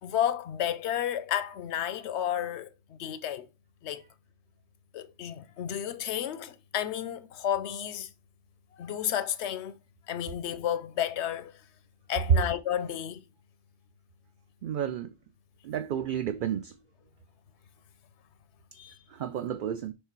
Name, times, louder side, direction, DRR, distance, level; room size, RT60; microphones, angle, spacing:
voice 1, 0.0-3.5 3.8-4.0 4.9-8.1 8.8-9.8 10.1-11.6 12.1-13.2 18.7-19.0, left 10 dB, 90° left, 0.9 m, -32 dB
voice 2, 14.6-15.1 15.6-16.8 19.1-19.9, right 9 dB, 60° right, 0.6 m, -32 dB
6.5 x 3.4 x 4.5 m
omnidirectional pair, 1.1 m